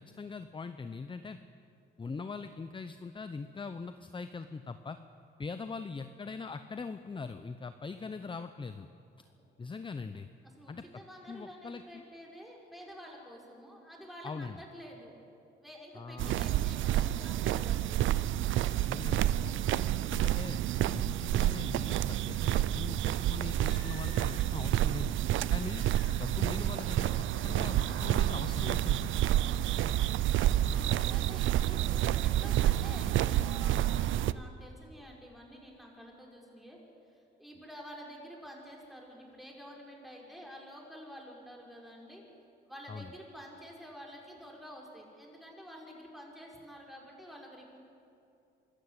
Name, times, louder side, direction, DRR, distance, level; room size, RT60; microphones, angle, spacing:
voice 1, 0.0-1.4 2.0-5.0 5.4-8.9 9.6-10.3 10.7-10.8 11.3-12.0 14.2-14.6 15.9-16.5 18.8-19.7 20.1-20.6 20.9-25.2 25.5-25.8 26.1-29.1 30.6-31.0 42.9-43.1, left 4 dB, 25° left, 10 dB, 0.8 m, -41 dB
voice 2, 10.6-15.2 15.6-18.0 19.9-20.4 29.4-29.8 30.5-36.8 37.0-42.2 42.7-47.8, equal, ahead, -1 dB, 5.4 m, -49 dB
sound 1, 16.2-34.3, right 13 dB, 75° right, 0.6 m, -29 dB
Crying sobbing, 23.3-24.6 25.5-26.4 26.6-27.1 27.8-28.1 29.7-29.8, left 5 dB, 80° left, 4.0 m, -54 dB
24.5 x 13.0 x 8.3 m, 2.6 s
cardioid pair, 90°, 20 cm